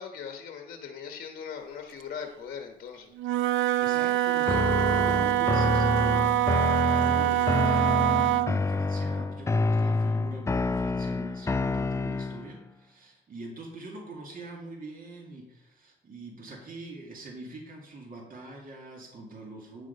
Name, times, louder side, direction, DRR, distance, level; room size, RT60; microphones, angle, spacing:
voice 1, 0.0-3.1, left 7 dB, 50° left, 4 dB, 1.1 m, -40 dB
Wind instrument woodwind instrument, 3.2-8.6, right 13 dB, 80° right, 0.5 m, -25 dB
voice 2, 3.8-19.9, right 2 dB, 45° right, 0 dB, 2.2 m, -44 dB
sound 1, 4.5-12.5, left 3 dB, 15° left, 0.3 m, -28 dB
9.4 x 6.2 x 5.2 m, 0.87 s
cardioid pair, 90°, 20 cm